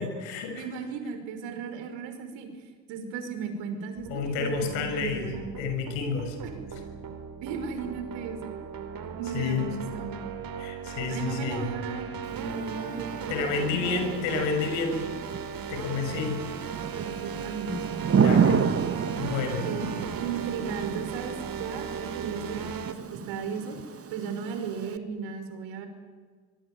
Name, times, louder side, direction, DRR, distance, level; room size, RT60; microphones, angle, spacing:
voice 1, 0.0-0.6 4.1-6.4 9.3-9.7 10.5-11.7 13.3-15.0 15.7-16.4 18.2-18.7 19.2-19.7, left 5 dB, 70° left, 6 dB, 6.6 m, -30 dB
voice 2, 0.6-2.5 2.9-5.5 6.4-6.5 7.4-8.5 9.2-10.3 11.1-14.1 16.1-16.3 16.9-17.8 19.6-23.8 24.1-25.9, right 5 dB, 65° right, 7 dB, 5.6 m, -36 dB
sound 1, 4.0-22.9, right 7 dB, 45° right, 3.0 m, -38 dB
Thunder / Rain, 12.2-25.0, right 6 dB, 30° right, 1.6 m, -31 dB
24.5 x 22.5 x 9.4 m, 1.5 s
hypercardioid pair, 65°, 47 cm